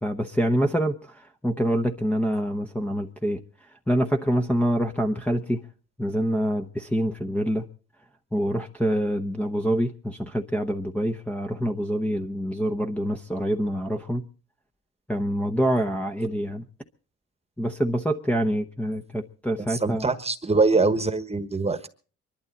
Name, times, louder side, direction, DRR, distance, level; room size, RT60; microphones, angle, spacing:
voice 1, 0.0-3.4 3.9-5.6 6.0-7.7 8.3-14.3 15.1-16.6 17.6-20.1, equal, 5° left, 0.9 m, -26 dB
voice 2, 19.7-21.9, right 3 dB, 20° right, 1.3 m, -23 dB
24.0 x 12.0 x 4.1 m
cardioid pair, 90°, 30 cm